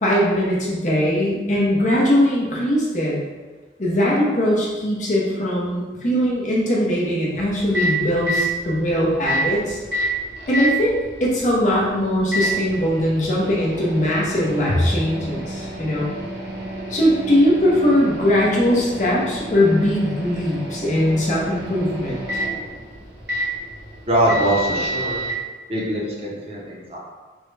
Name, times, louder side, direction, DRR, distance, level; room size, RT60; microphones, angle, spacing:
voice 1, 0.0-3.2 3.8-9.8 10.5-10.9 11.2-16.1 16.9-22.2, equal, 40° left, -5 dB, 0.7 m, -20 dB
Microwave oven, 7.3-25.3, right 1 dB, 70° right, 0.8 m, -29 dB
voice 2, 24.1-25.2 25.7-27.0, right 1 dB, 30° right, -4 dB, 0.6 m, -22 dB
3.6 x 2.2 x 3.2 m, 1.3 s
head